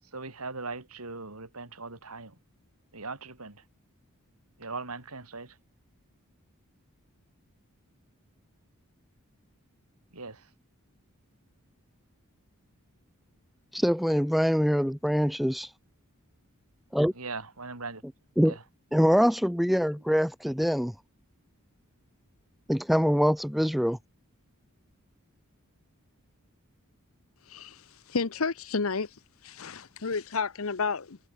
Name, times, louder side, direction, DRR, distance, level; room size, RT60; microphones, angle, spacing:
voice 1, 0.1-2.3 2.9-3.6 4.6-5.5 10.1-10.4 17.2-18.0 18.5-18.6, right 3 dB, 85° right, 4.1 m, -39 dB
voice 2, 13.7-15.7 16.9-17.1 18.4-18.6 18.9-20.9 22.7-24.0, equal, ahead, 0.4 m, -24 dB
voice 3, 27.5-29.1 29.4-31.2, left 4 dB, 70° left, 0.9 m, -31 dB
head